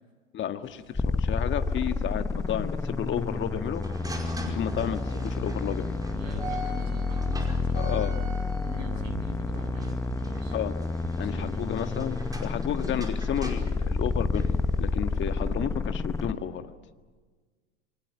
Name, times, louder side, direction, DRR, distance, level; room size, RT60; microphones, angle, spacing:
voice 1, 0.3-3.8 4.4-6.0 7.7-8.2 10.5-10.7 11.2-12.2 12.4-16.8, left 10 dB, 30° left, 8 dB, 1.7 m, -32 dB
sound 1, 0.6-16.3, right 1 dB, 10° right, 5.0 m, -42 dB
sound 2, 0.9-16.3, left 3 dB, 5° left, 1.1 m, -30 dB
sound 3, 1.6-5.0 5.4-7.8 8.2-12.5 12.9-15.3 15.7-16.4, right 4 dB, 80° right, 1.2 m, -48 dB
voice 2, 6.1-8.2 8.6-10.6 11.2-11.7, right 3 dB, 45° right, 5 dB, 7.4 m, -43 dB
28.5 x 24.5 x 6.0 m, 1.4 s
figure-of-eight pair, 85°, 36 cm